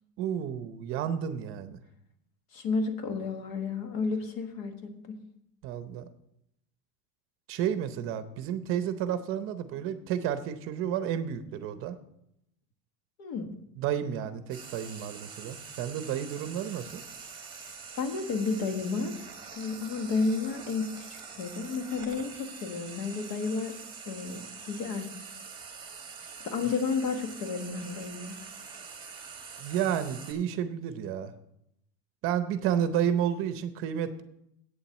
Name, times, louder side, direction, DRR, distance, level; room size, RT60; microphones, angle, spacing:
voice 1, 0.2-1.8 5.6-6.1 7.5-12.0 13.8-17.0 29.6-31.3 32.2-34.2, right 9 dB, 45° right, 11 dB, 0.7 m, -31 dB
voice 2, 2.5-5.2 13.2-13.5 18.0-19.1 19.5-23.8 24.0-25.1 26.4-28.4, left 4 dB, 55° left, 6 dB, 1.6 m, -32 dB
Frying (food), 14.5-30.3, right 5 dB, 15° right, 1.3 m, -45 dB
8.7 x 7.3 x 7.2 m, 0.78 s
cardioid pair, 180°, 32 cm